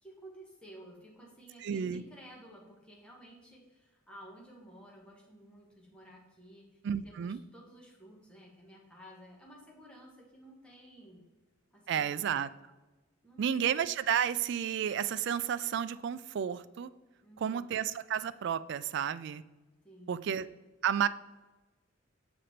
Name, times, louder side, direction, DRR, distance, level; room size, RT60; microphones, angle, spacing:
voice 1, 0.0-11.2 11.7-12.4 13.2-13.6 17.2-17.7 19.8-20.3, equal, 5° left, -3 dB, 1.4 m, -54 dB
voice 2, 1.6-2.0 6.8-7.4 11.9-12.5 13.4-16.9 17.4-19.4 20.1-20.5 20.8-21.1, right 8 dB, 60° right, 15 dB, 0.3 m, -31 dB
6.8 x 5.0 x 4.3 m, 1.1 s
head